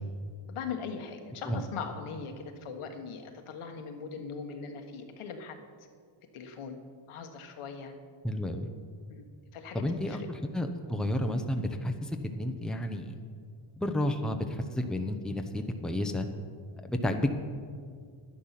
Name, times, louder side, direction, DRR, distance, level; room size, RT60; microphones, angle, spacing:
voice 1, 0.5-5.6 6.3-6.7 7.1-7.9 9.1-9.2 9.5-10.3, left 5 dB, 80° left, 5 dB, 1.4 m, -40 dB
voice 2, 8.2-8.7 9.7-13.2 13.8-16.3 16.8-17.3, left 1 dB, ahead, 5 dB, 0.8 m, -31 dB
11.0 x 10.0 x 5.8 m, 2.1 s
cardioid pair, 105°, 50 cm